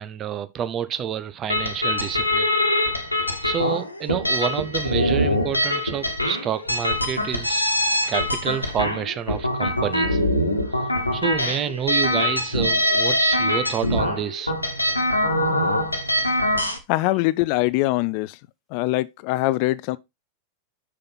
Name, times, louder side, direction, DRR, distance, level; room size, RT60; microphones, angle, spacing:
voice 1, 0.0-2.8 3.4-10.2 10.7-14.5, right 9 dB, 30° right, 0.8 m, -29 dB
sound 1, 1.5-16.8, left 1 dB, 85° left, 1.2 m, -23 dB
voice 2, 16.9-18.4 18.7-20.0, left 19 dB, 45° left, 0.4 m, -22 dB
6.6 x 5.8 x 3.9 m
figure-of-eight pair, 90°, 0 cm